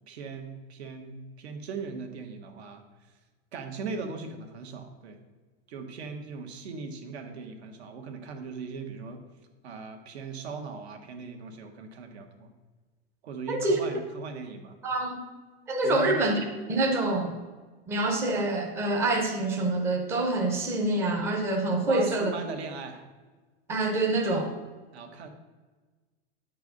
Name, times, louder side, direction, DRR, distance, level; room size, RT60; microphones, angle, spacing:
voice 1, 0.1-2.8 3.5-5.2 5.7-9.2 9.6-12.5 13.2-14.8 15.8-16.2 21.8-23.0 24.9-25.3, right 4 dB, 80° right, 5 dB, 1.5 m, -39 dB
voice 2, 13.5-13.8 14.8-15.2 15.7-16.3 16.7-17.4 17.9-22.3 23.7-24.5, right 2 dB, 10° right, 2 dB, 0.5 m, -26 dB
9.8 x 4.7 x 6.6 m, 1.3 s
supercardioid pair, 175°, 32 cm